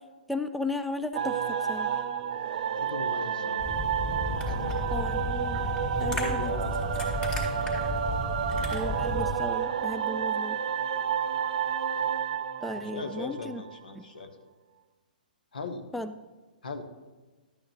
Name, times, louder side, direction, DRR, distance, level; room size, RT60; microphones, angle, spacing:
voice 1, 0.3-1.4 1.7-1.9 4.9-5.6 6.0-6.5 8.7-10.6 12.6-13.6 14.0-14.1 15.9-16.1, left 1 dB, ahead, 9 dB, 0.3 m, -35 dB
sound 1, 1.1-13.7, right 8 dB, 55° right, 0.7 m, -30 dB
voice 2, 2.7-3.7 4.4-5.0 5.8-6.9 12.7-14.4 15.5-15.9 16.6-16.8, left 3 dB, 75° left, 7 dB, 1.2 m, -39 dB
sound 2, 3.6-9.3, left 2 dB, 15° left, 2.4 m, -33 dB
12.0 x 8.8 x 3.1 m, 1.3 s
hypercardioid pair, 125°, 5 cm